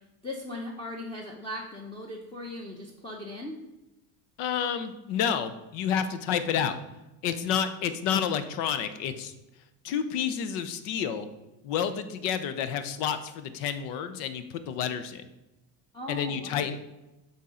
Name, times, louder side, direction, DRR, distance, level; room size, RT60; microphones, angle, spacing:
voice 1, 0.2-3.6 15.9-16.7, left 1 dB, 10° left, -1 dB, 0.9 m, -38 dB
voice 2, 4.4-6.8 7.2-9.3 9.8-11.3 11.6-15.2 16.1-16.8, left 8 dB, 65° left, 11 dB, 0.8 m, -29 dB
7.2 x 4.3 x 3.8 m, 0.98 s
supercardioid pair, 100°, 46 cm